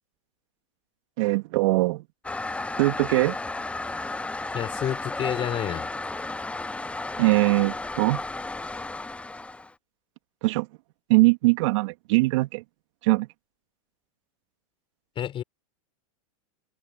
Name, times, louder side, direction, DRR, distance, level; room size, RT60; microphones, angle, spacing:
voice 1, 1.2-2.0 2.8-3.4 7.2-8.2 10.4-10.7 11.1-12.6 13.0-13.3, right 23 dB, 60° right, 2.6 m, -21 dB
Toilet flush, 2.2-9.7, left 2 dB, 5° left, 1.1 m, -33 dB
voice 2, 4.5-5.9 15.2-15.4, left 10 dB, 30° left, 4.0 m, -29 dB
hypercardioid pair, 110°, 18 cm